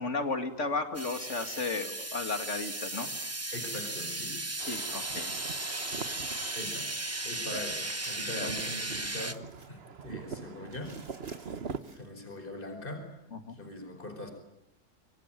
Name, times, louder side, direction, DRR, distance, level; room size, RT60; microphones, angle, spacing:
voice 1, 0.0-3.1 4.7-5.3 7.5-7.6 8.4-8.5 13.3-13.6, left 3 dB, 50° left, 8 dB, 2.6 m, -34 dB
sound 1, 0.9-9.3, right 2 dB, 10° right, 1.0 m, -36 dB
voice 2, 3.5-4.4 6.6-6.9 7.2-11.0 12.0-13.1 13.5-14.3, left 1 dB, 35° left, 5 dB, 5.2 m, -41 dB
sound 2, 4.6-11.8, right 5 dB, 45° right, 1.3 m, -43 dB
Crumpling crinkling, 7.2-9.7 10.1-10.2 10.6-12.3, right 2 dB, 70° right, 4.4 m, -51 dB
26.5 x 24.5 x 9.2 m, 0.81 s
omnidirectional pair, 1.6 m